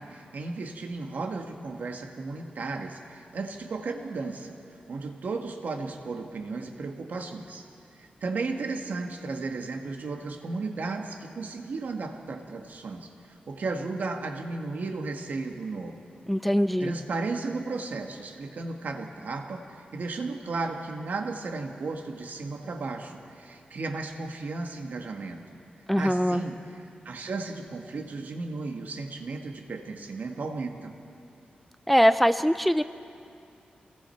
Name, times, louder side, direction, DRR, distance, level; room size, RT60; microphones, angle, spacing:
voice 1, 0.0-4.6 4.9-7.6 7.9-16.0 16.8-25.6 26.0-26.6 27.1-30.9, right 3 dB, 70° right, 3 dB, 1.8 m, -34 dB
voice 2, 16.3-16.9 25.9-26.4 31.9-32.8, equal, ahead, 11 dB, 0.4 m, -22 dB
28.0 x 21.0 x 4.5 m, 2.5 s
wide cardioid pair, 125°, 3 cm